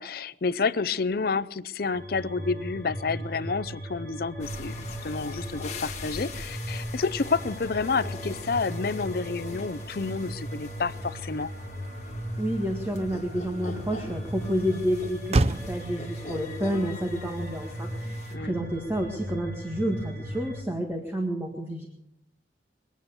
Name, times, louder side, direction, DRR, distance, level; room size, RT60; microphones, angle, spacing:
voice 1, 0.0-4.7 5.0-11.5 18.3-18.6, left 4 dB, 55° left, 16 dB, 0.5 m, -29 dB
sound 1, 1.9-20.6, equal, 55° right, 3.3 m, -37 dB
sound 2, 4.4-18.3, left 3 dB, 40° left, 1.8 m, -43 dB
Motor vehicle (road), 11.2-19.9, right 2 dB, 35° right, 0.5 m, -34 dB
voice 2, 12.4-21.9, equal, 15° right, 2 dB, 1.8 m, -30 dB
22.5 x 9.3 x 7.0 m, 0.77 s
head